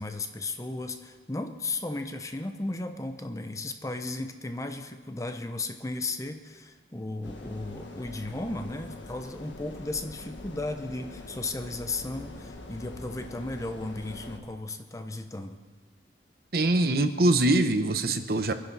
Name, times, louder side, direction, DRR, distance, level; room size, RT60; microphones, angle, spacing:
voice 1, 0.0-15.6, left 2 dB, 15° left, 7 dB, 0.8 m, -35 dB
sound 1, 7.2-14.4, left 2 dB, 90° left, 1.7 m, -44 dB
voice 2, 16.5-18.5, right 2 dB, 55° right, 8 dB, 0.9 m, -23 dB
23.5 x 10.0 x 5.5 m, 1.4 s
head